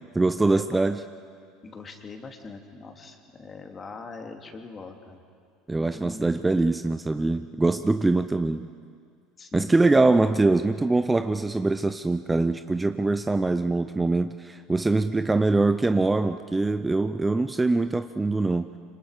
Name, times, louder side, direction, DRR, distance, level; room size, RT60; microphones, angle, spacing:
voice 1, 0.1-1.0 5.7-8.7 9.5-18.8, right 3 dB, 15° right, 10 dB, 0.6 m, -23 dB
voice 2, 1.6-5.2 5.8-6.3 9.4-10.2, left 4 dB, 30° left, 4 dB, 2.6 m, -42 dB
26.0 x 26.0 x 5.0 m, 2.2 s
hypercardioid pair, 75°, 0 cm